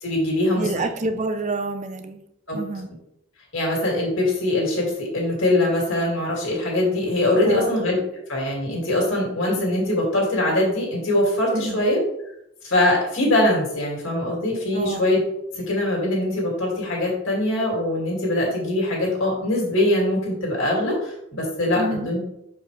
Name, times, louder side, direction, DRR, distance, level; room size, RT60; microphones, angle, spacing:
voice 1, 0.0-0.8 2.5-2.6 3.5-8.0 8.3-12.0 12.6-15.2 15.6-22.2, left 1 dB, 70° left, -3 dB, 2.5 m, -22 dB
voice 2, 0.6-2.2 2.5-2.9 7.4-7.7 11.5-11.9 14.7-15.0 21.8-22.1, right 2 dB, 35° right, 8 dB, 0.5 m, -28 dB
6.0 x 4.9 x 3.3 m, 0.80 s
head